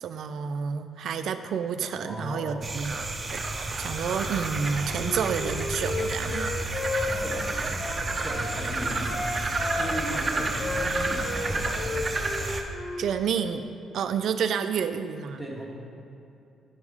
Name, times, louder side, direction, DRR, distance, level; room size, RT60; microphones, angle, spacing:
voice 1, 0.0-3.0 3.3-3.4 3.8-6.5 13.0-13.7 13.9-15.4, right 7 dB, 70° right, 9 dB, 0.3 m, -29 dB
voice 2, 2.0-2.6 6.8-9.1 9.7-11.2 11.5-12.0 15.4-15.6, equal, 20° left, -4 dB, 1.8 m, -37 dB
sound 1, 2.6-12.6, right 2 dB, 30° right, 0.7 m, -30 dB
Wind instrument woodwind instrument, 4.9-8.6 9.0-11.5 11.7-13.0, left 2 dB, 70° left, 1.4 m, -33 dB
9.6 x 3.5 x 4.8 m, 2.7 s
cardioid pair, 90°, 0 cm